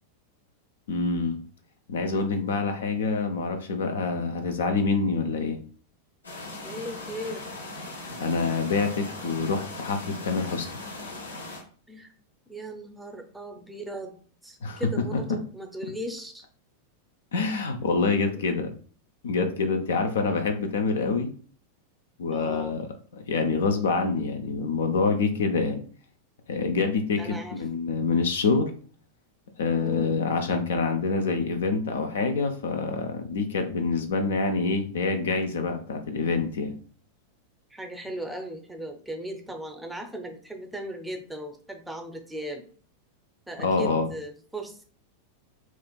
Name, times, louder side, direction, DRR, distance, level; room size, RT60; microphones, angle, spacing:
voice 1, 0.9-1.4 1.9-5.6 8.2-10.7 14.6-15.2 17.3-18.7 19.2-21.3 22.2-22.9 23.1-25.8 26.5-28.7 29.6-36.7 43.6-44.1, left 4 dB, 60° left, 7 dB, 0.5 m, -26 dB
sound 1, 6.2-11.6, left 2 dB, 80° left, 1.4 m, -39 dB
voice 2, 6.6-7.5 11.9-12.1 12.5-14.1 14.4-16.4 18.3-18.4 22.3-22.8 27.2-27.6 29.6-30.3 37.7-42.7 43.5-44.8, right 1 dB, 5° right, 4 dB, 0.6 m, -37 dB
4.3 x 2.4 x 2.3 m, 0.43 s
figure-of-eight pair, 90°, 0 cm